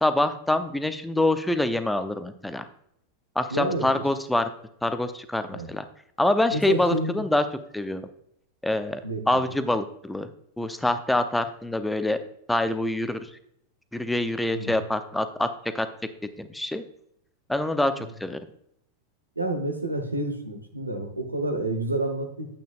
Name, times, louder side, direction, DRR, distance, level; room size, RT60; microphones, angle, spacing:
voice 1, 0.0-2.7 3.4-4.5 4.8-5.8 6.2-7.4 7.7-8.0 8.6-9.0 9.3-10.3 10.6-12.2 12.5-13.3 13.9-15.5 15.7-15.9 16.4-16.8 17.5-18.4, left 1 dB, 5° left, 10 dB, 0.6 m, -25 dB
voice 2, 3.5-4.0 5.5-5.7 6.5-7.2 9.0-9.4 14.5-14.8 19.4-22.5, right 2 dB, 85° right, 6 dB, 1.1 m, -29 dB
9.1 x 8.6 x 2.4 m, 0.73 s
figure-of-eight pair, 90°, 0 cm